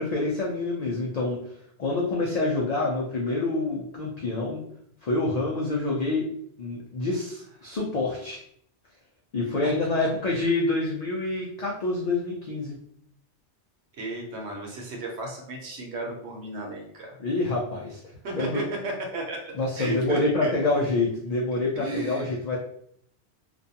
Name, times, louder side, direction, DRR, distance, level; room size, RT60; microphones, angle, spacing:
voice 1, 0.0-1.4 1.8-4.6 5.0-6.3 6.6-8.4 9.3-12.8 17.2-18.0 18.4-18.6 19.5-22.6, left 2 dB, 55° left, -3 dB, 0.4 m, -27 dB
voice 2, 14.0-17.1 18.2-20.5 21.8-22.4, right 2 dB, 80° right, 0 dB, 1.0 m, -34 dB
2.4 x 2.2 x 2.7 m, 0.67 s
omnidirectional pair, 1.1 m